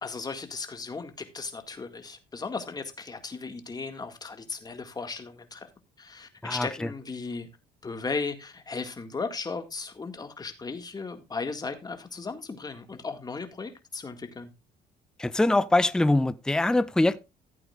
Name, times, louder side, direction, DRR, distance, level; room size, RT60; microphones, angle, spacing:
voice 1, 0.0-5.7 6.0-7.5 7.8-14.5, left 4 dB, 25° left, 1.9 m, -36 dB
voice 2, 15.2-17.2, left 2 dB, 5° left, 0.5 m, -23 dB
15.0 x 8.6 x 2.4 m
cardioid pair, 110°, 17 cm